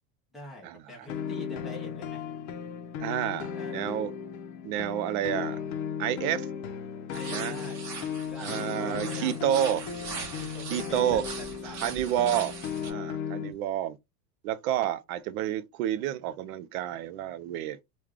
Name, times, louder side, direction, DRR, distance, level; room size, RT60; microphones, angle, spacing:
voice 1, 0.3-2.3 3.3-4.2 7.1-7.8 8.2-9.3 9.7-10.1 10.4-11.9, left 1 dB, ahead, 0.4 m, -46 dB
sound 1, 1.1-13.5, left 7 dB, 55° left, 0.6 m, -36 dB
voice 2, 3.0-4.1 4.6-5.6 6.0-6.5 7.3-7.5 8.4-9.9 10.7-11.3 11.7-12.6 12.8-14.0 14.4-17.8, right 11 dB, 65° right, 0.5 m, -29 dB
sound 2, 7.1-12.9, right 4 dB, 35° right, 0.8 m, -40 dB
3.2 x 2.4 x 3.6 m
supercardioid pair, 155°, 47 cm